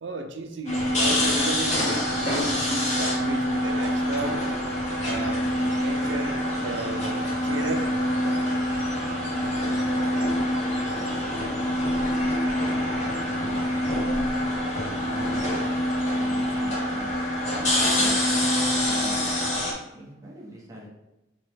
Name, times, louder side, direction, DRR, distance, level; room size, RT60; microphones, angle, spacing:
voice 1, 0.0-4.4 5.0-5.5 5.8-6.4 6.6-7.9, right 2 dB, 70° right, 5 dB, 0.5 m, -33 dB
sound 1, 0.7-19.7, left 1 dB, 40° left, 0.9 m, -25 dB
voice 2, 12.7-14.4 15.0-15.9 16.1-17.1 17.9-19.2 19.9-20.9, equal, 20° right, -4 dB, 0.8 m, -41 dB
3.8 x 3.1 x 3.4 m, 0.94 s
head